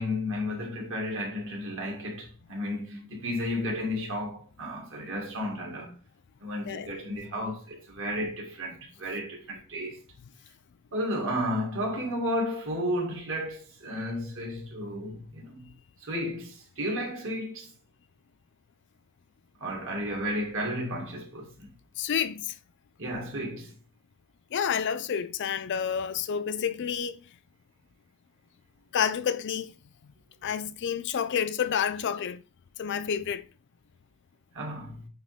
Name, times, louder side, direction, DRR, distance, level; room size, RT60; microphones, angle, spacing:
voice 1, 0.0-5.9 6.4-10.0 10.9-15.7 16.0-17.7 19.6-21.7 23.0-23.7 34.5-35.1, equal, 60° right, 2.2 m, -33 dB
voice 2, 6.6-7.0 22.0-22.6 24.5-27.2 28.9-29.7 30.4-32.4 32.8-33.4, left 8 dB, 50° left, 0.4 m, -29 dB
9.0 x 3.1 x 3.5 m
head